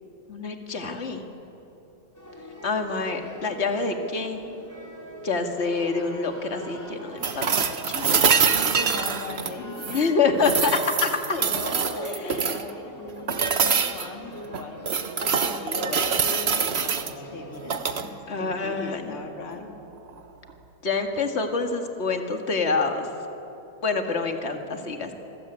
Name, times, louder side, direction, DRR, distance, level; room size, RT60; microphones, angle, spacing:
voice 1, 0.3-1.2 2.6-4.4 5.2-8.7 9.9-11.4 12.0-12.6 18.3-19.2 20.8-23.1 23.8-25.1, left 4 dB, 30° left, 4 dB, 2.1 m, -27 dB
sound 1, 2.1-19.1, equal, 10° left, 4.0 m, -43 dB
sound 2, 7.2-10.1 10.4-12.7 13.3-14.1 14.5-17.1 17.6-18.1 20.1-20.2, right 6 dB, 45° right, 0.8 m, -25 dB
voice 2, 8.8-10.3 10.8-10.9 11.3-19.8, left 3 dB, 85° left, 3 dB, 3.6 m, -38 dB
26.5 x 20.5 x 9.0 m, 2.9 s
omnidirectional pair, 2.4 m